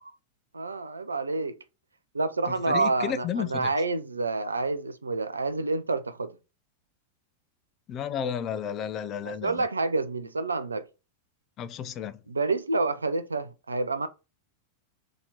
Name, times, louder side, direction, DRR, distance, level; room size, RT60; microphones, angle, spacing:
voice 1, 0.5-1.6 2.1-6.4 9.3-10.9 12.3-14.1, right 3 dB, 75° right, 0.4 m, -28 dB
voice 2, 2.5-3.7 7.9-9.7 11.6-12.2, left 8 dB, 35° left, 0.4 m, -32 dB
2.9 x 2.7 x 3.9 m
figure-of-eight pair, 90°, 0 cm